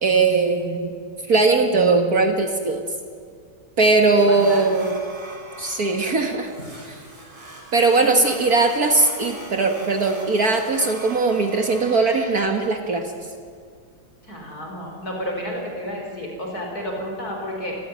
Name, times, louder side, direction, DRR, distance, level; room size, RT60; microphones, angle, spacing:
voice 1, 0.0-1.0 1.3-2.8 3.8-5.0 5.6-6.5 7.7-13.1, right 3 dB, 50° right, 4 dB, 2.0 m, -19 dB
voice 2, 4.1-4.7 8.0-8.1 14.2-17.8, equal, 50° left, 0 dB, 4.9 m, -31 dB
sound 1, 4.1-12.3, right 1 dB, 15° right, 4.0 m, -41 dB
26.0 x 15.5 x 9.6 m, 2.1 s
omnidirectional pair, 2.1 m